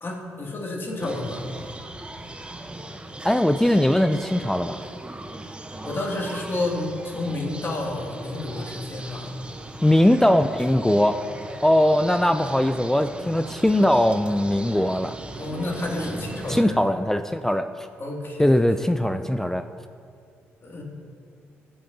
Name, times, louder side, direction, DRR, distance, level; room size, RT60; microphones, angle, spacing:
voice 1, 0.0-1.4 5.8-9.3 15.3-16.8 18.0-18.9 20.6-20.8, left 2 dB, 40° left, -1 dB, 2.1 m, -30 dB
sound 1, 1.0-16.6, right 2 dB, 15° right, 0.8 m, -38 dB
voice 2, 3.2-4.8 9.8-11.2 11.6-15.1 16.5-17.9 18.4-19.7, left 1 dB, 5° left, 9 dB, 0.3 m, -20 dB
17.0 x 5.8 x 2.7 m, 2.3 s
hypercardioid pair, 45°, 6 cm